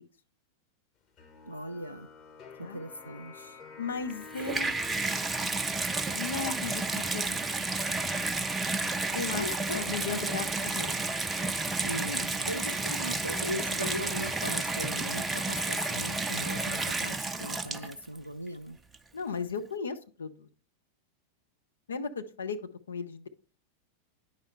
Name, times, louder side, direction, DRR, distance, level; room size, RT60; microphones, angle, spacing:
sound 1, 1.2-8.0, left 4 dB, 35° left, 1.3 m, -51 dB
voice 1, 1.4-2.1 2.6-3.6 4.5-4.6 9.3-9.8 11.8-18.8, equal, 90° right, 0.3 m, -38 dB
voice 2, 3.8-4.7 6.1-7.4 9.1-9.5 9.7-11.0 19.1-20.5 21.9-22.6 22.9-23.3, left 5 dB, 70° left, 0.7 m, -36 dB
Water tap faucet / Bathtub (filling or washing), 4.1-18.2 18.9-19.0, right 3 dB, 10° right, 0.5 m, -31 dB
9.6 x 5.3 x 3.3 m
figure-of-eight pair, 90°, 0 cm